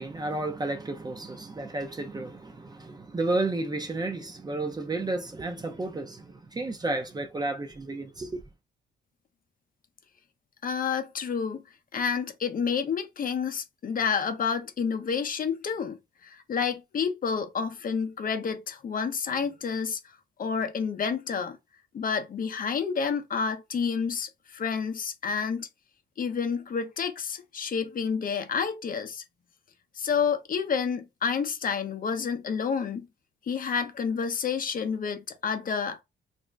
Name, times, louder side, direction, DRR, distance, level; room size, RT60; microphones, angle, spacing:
voice 1, 0.0-8.4, right 2 dB, 20° right, 0.6 m, -32 dB
voice 2, 10.6-11.6 11.9-16.0 16.2-20.0 20.4-21.6 21.9-25.7 26.2-29.2 30.0-33.1 33.5-36.0, left 6 dB, 45° left, 0.7 m, -29 dB
2.5 x 2.1 x 3.3 m
cardioid pair, 90°, 20 cm